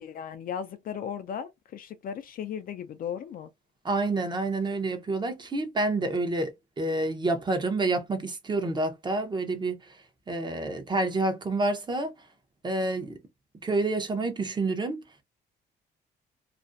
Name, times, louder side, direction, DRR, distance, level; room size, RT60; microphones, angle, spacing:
voice 1, 0.0-3.5, left 8 dB, 50° left, 0.4 m, -36 dB
voice 2, 3.8-10.0 10.3-12.1 12.6-13.1 13.6-15.0, right 2 dB, 25° right, 0.7 m, -28 dB
2.5 x 2.0 x 2.5 m
cardioid pair, 100°, 18 cm